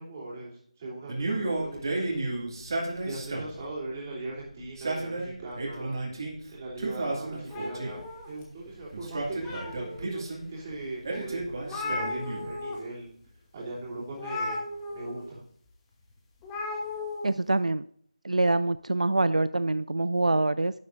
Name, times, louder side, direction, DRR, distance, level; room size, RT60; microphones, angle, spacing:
voice 1, 0.0-2.2 3.0-6.0 6.5-13.1 13.5-14.6 14.9-15.4, right 2 dB, 20° right, -5 dB, 3.1 m, -39 dB
Male speech man speaking, 1.1-3.6 4.6-6.4 6.8-8.1 8.9-10.4 11.0-12.6, right 2 dB, 35° right, 2.2 m, -33 dB
sound 1, 7.5-8.7 9.2-10.1 10.7-10.8 11.1-11.2 11.4-12.8 13.1-13.3 14.2-15.2 16.4-17.3, left 3 dB, 10° left, 1.0 m, -35 dB
voice 2, 17.2-17.8 18.2-20.7, right 2 dB, 70° right, 14 dB, 0.3 m, -25 dB
11.5 x 9.5 x 2.6 m, 0.65 s
figure-of-eight pair, 160°, 4 cm